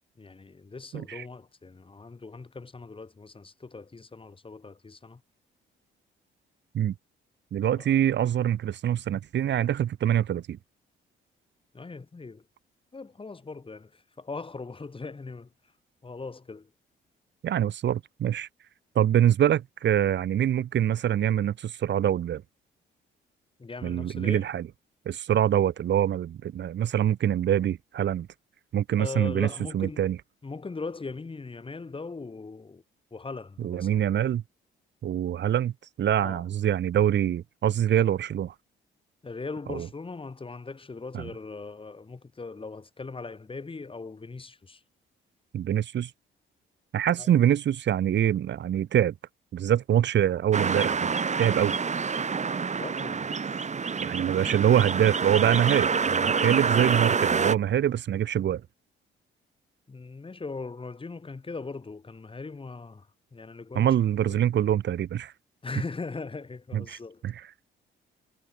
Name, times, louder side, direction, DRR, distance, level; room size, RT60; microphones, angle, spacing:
voice 1, 0.2-5.2 7.8-7.9 11.7-12.4 12.9-15.5 16.0-16.7 23.6-24.5 29.0-30.0 30.4-32.8 33.1-33.9 36.2-36.4 39.2-44.8 47.2-47.3 52.8-53.3 59.9-64.0 64.3-64.4 65.6-67.2, left 4 dB, 25° left, 7.8 m, -39 dB
voice 2, 0.9-1.2 6.7-6.9 7.5-10.6 17.4-18.5 19.0-22.4 23.8-24.7 25.1-28.3 28.7-29.5 29.7-30.2 33.6-34.4 35.0-35.7 36.0-38.5 39.7-39.9 41.1-41.3 45.5-46.1 46.9-49.1 49.5-51.1 51.4-51.8 54.0-58.6 63.8-65.3 66.7-67.0 67.2-67.4, right 10 dB, 65° right, 1.7 m, -24 dB
sound 1, 50.5-57.6, right 5 dB, 35° right, 3.2 m, -27 dB
cardioid pair, 90°, 20 cm